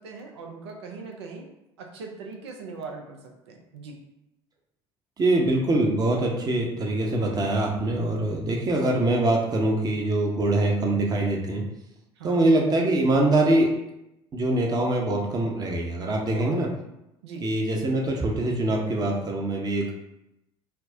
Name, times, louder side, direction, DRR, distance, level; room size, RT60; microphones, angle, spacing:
voice 1, 0.0-1.5 1.8-4.0 12.2-12.5 16.2-16.6 17.2-17.4, right 4 dB, 75° right, 2 dB, 0.6 m, -40 dB
voice 2, 5.2-11.6 12.2-13.7 14.3-16.7 17.4-19.9, right 2 dB, 25° right, 0 dB, 0.8 m, -23 dB
4.3 x 2.1 x 2.7 m, 0.88 s
figure-of-eight pair, 60°, 14 cm